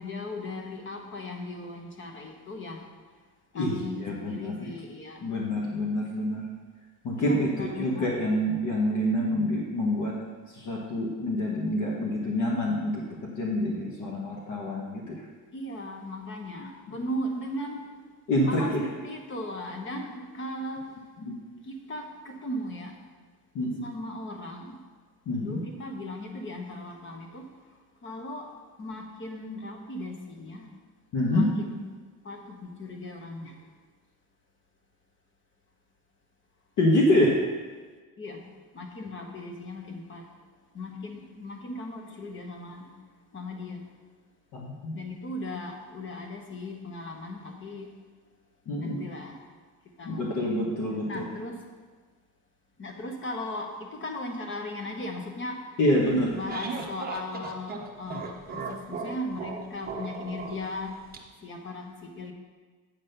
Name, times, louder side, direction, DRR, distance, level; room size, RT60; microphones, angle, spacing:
voice 1, 0.0-2.8 3.5-5.3 7.1-8.1 15.5-17.8 18.4-20.9 21.6-22.9 23.8-24.8 25.4-27.5 28.0-28.4 28.8-30.6 31.3-31.9 32.2-33.6 37.1-37.4 38.2-38.5 38.7-40.2 40.7-42.9 43.3-43.8 44.9-47.9 48.8-49.4 50.0-50.6 51.1-51.6 52.8-55.6 56.3-61.0 61.4-62.3, left 1 dB, 30° left, 3 dB, 1.1 m, -37 dB
voice 2, 3.5-4.7 5.2-6.4 7.0-10.1 10.5-15.2 18.3-18.8 21.2-21.3 23.5-23.9 25.3-25.6 31.1-31.5 36.8-37.3 44.5-45.0 48.7-49.0 50.1-51.2 55.8-56.3, left 1 dB, 55° left, -3 dB, 1.4 m, -27 dB
sound 1, 56.1-61.2, right 4 dB, 25° right, 0.8 m, -37 dB
8.5 x 4.1 x 6.6 m, 1.4 s
cardioid pair, 140°, 37 cm